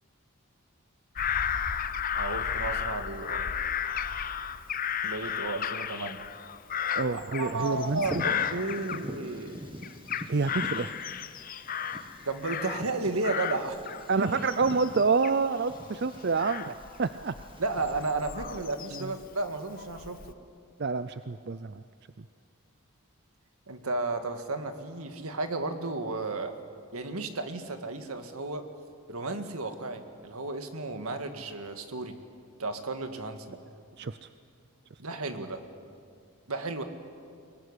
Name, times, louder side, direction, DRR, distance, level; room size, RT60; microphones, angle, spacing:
Bird vocalization bird call bird song / Crow, 1.2-9.5 9.8-13.0 13.2-19.2 19.8-20.3, left 8 dB, 40° left, 0.7 m, -34 dB
voice 1, 2.2-3.5 5.0-6.2 7.1-9.6 12.3-13.8 14.2-14.3 17.6-20.2 23.7-26.5 26.9-28.6 29.1-32.2 32.6-33.6 35.0-35.6 36.5-36.8, right 3 dB, 80° right, 7 dB, 1.9 m, -33 dB
voice 2, 6.9-8.2 10.3-10.9 14.1-17.3 18.9-19.2 20.8-21.8 22.2-22.3 34.0-34.3, right 4 dB, 50° right, 12 dB, 0.5 m, -28 dB
Bird vocalization bird call bird song, 7.6-18.1, equal, 20° right, 1.4 m, -44 dB
23.5 x 19.0 x 9.8 m, 2.3 s
head